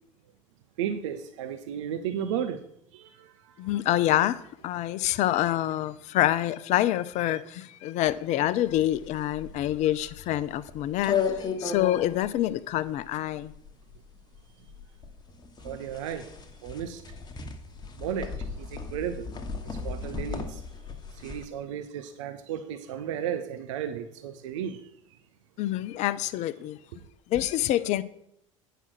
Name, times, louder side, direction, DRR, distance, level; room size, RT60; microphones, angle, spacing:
voice 1, 0.8-2.6 2.9-3.5 15.6-16.3 16.6-17.0 18.0-19.3 19.8-20.6 21.2-24.8, right 9 dB, 65° right, 0.7 m, -34 dB
voice 2, 3.6-13.5 25.6-26.8 27.3-28.0, left 13 dB, 45° left, 0.5 m, -27 dB
sound 1, 8.7-21.5, left 5 dB, 25° left, 1.2 m, -35 dB
9.1 x 5.9 x 5.9 m
figure-of-eight pair, 70°, 17 cm